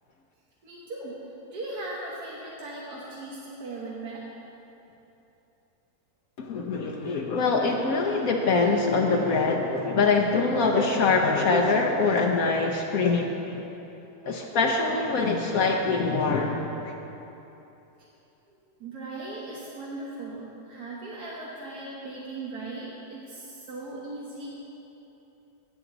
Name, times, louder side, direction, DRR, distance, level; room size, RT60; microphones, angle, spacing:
voice 1, 0.6-1.2 1.5-4.3 18.5-24.5, right 2 dB, 90° right, -6 dB, 1.8 m, -38 dB
voice 2, 6.4-13.7 14.3-16.9, left 4 dB, 70° left, 1 dB, 1.2 m, -24 dB
16.0 x 7.5 x 3.9 m, 3.0 s
omnidirectional pair, 1.6 m